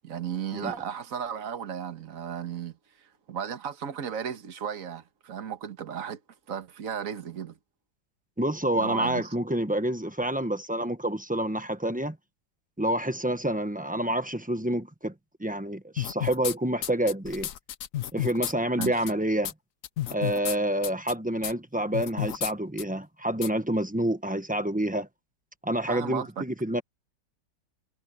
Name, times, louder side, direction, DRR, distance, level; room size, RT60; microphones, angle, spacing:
voice 1, 0.0-6.2 6.5-7.6 8.7-9.3 18.8-19.0 25.9-26.4, right 8 dB, 50° right, 1.8 m, -35 dB
voice 2, 8.4-12.2 12.8-15.1 15.4-17.5 18.1-19.5 20.1-25.1 25.6-26.8, right 1 dB, 5° right, 0.8 m, -28 dB
sound 1, 16.0-16.5 16.8-18.5 18.8-19.1 19.4-19.5 19.8-20.6 20.8-21.1 21.4-21.5 21.9-22.5 22.8-22.9 23.4-23.5, left 12 dB, 60° left, 1.0 m, -31 dB
omnidirectional pair, 1.8 m